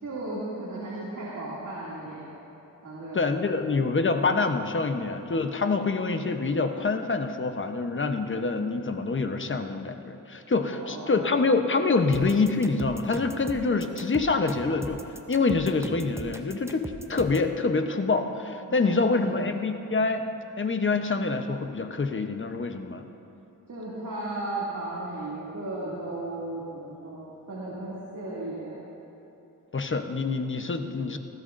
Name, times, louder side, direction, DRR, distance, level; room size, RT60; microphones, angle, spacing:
voice 1, 0.0-2.4 2.8-3.3 10.7-11.3 18.8-19.4 23.7-28.8, right 2 dB, 60° right, -7 dB, 2.5 m, -35 dB
voice 2, 3.1-15.0 15.3-20.3 20.6-23.0 29.7-31.2, left 3 dB, 35° left, 6 dB, 0.9 m, -26 dB
sound 1, 12.1-17.5, right 1 dB, 10° right, 0.6 m, -39 dB
19.0 x 15.0 x 2.6 m, 2.9 s
wide cardioid pair, 80°, 34 cm